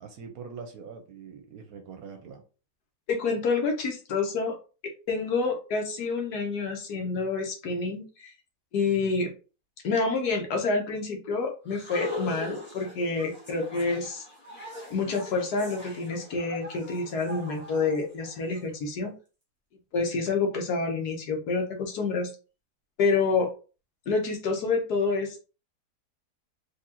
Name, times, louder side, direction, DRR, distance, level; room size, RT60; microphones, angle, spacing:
voice 1, 0.0-2.4, right 5 dB, 70° right, 1.0 m, -43 dB
voice 2, 3.1-4.5 5.1-8.3 8.7-9.3 9.8-14.2 14.9-19.1 19.9-22.3 23.0-23.5 24.1-25.4, left 4 dB, 70° left, 1.4 m, -28 dB
sound 1, 11.7-18.6, left 2 dB, 5° left, 1.3 m, -40 dB
4.0 x 2.9 x 2.8 m
omnidirectional pair, 1.8 m